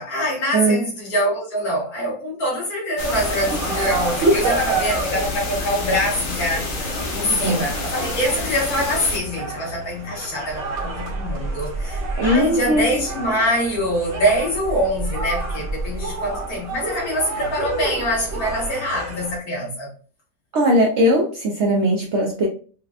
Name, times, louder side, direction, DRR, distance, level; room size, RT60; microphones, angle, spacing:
voice 1, 0.0-6.7 7.1-19.9, equal, 60° left, 2.1 m, -24 dB
voice 2, 0.5-0.9 4.2-4.6 7.3-7.6 12.2-13.0 20.5-22.5, equal, 70° right, 0.6 m, -19 dB
sound 1, 3.0-9.2, left 3 dB, 85° left, 0.4 m, -28 dB
sound 2, 3.1-19.4, right 3 dB, 50° right, 1.0 m, -31 dB
sound 3, 10.5-18.7, right 2 dB, 30° right, 0.5 m, -32 dB
4.8 x 2.2 x 2.3 m
omnidirectional pair, 1.8 m